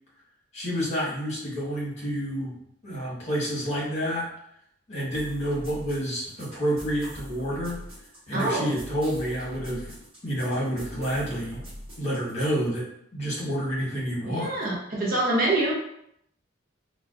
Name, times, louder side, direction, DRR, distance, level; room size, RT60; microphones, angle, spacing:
voice 1, 0.5-2.5 2.8-4.3 4.9-7.8 8.3-9.9 10.2-11.6 12.0-12.9 13.1-14.5, equal, 35° left, -6 dB, 1.4 m, -29 dB
sound 1, 5.1-12.5, equal, 25° right, 1.4 m, -43 dB
voice 2, 8.3-8.7 14.3-15.7, right 2 dB, 45° right, -4 dB, 0.7 m, -25 dB
4.5 x 2.2 x 2.5 m, 0.73 s
head